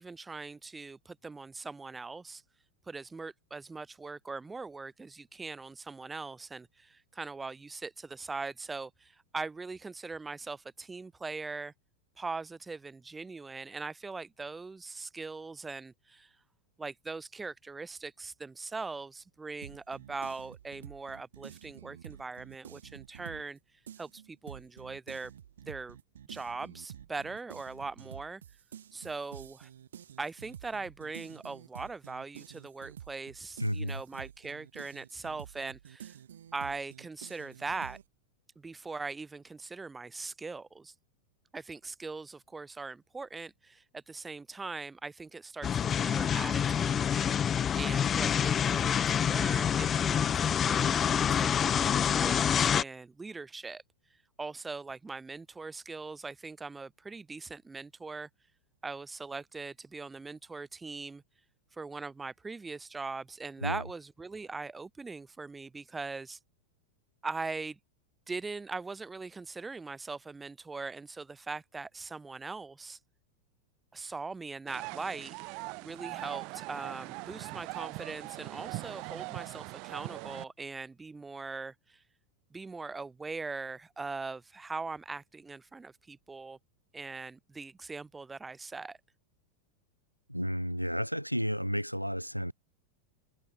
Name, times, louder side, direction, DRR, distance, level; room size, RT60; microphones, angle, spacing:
voice 1, 0.0-2.4 2.9-11.7 12.2-16.3 16.8-23.6 24.0-25.3 25.6-26.0 26.3-28.4 28.9-29.7 30.2-36.2 36.5-38.0 38.6-40.9 41.5-47.1 47.7-53.8 54.4-58.3 58.8-61.2 61.7-66.4 67.2-67.8 68.3-73.0 73.9-75.3 75.8-82.0 82.5-86.6 86.9-89.0, right 4 dB, 10° right, 4.5 m, -41 dB
sound 1, 19.6-23.6 23.9-38.0, right 9 dB, 65° right, 2.4 m, -49 dB
voice 2, 33.6-34.0 63.6-63.8 90.3-92.5, equal, 90° left, 4.3 m, -32 dB
sound 2, 45.6-52.8, left 8 dB, 25° left, 0.7 m, -27 dB
sound 3, 74.7-80.4, right 29 dB, 45° right, 0.9 m, -41 dB
figure-of-eight pair, 90°, 0 cm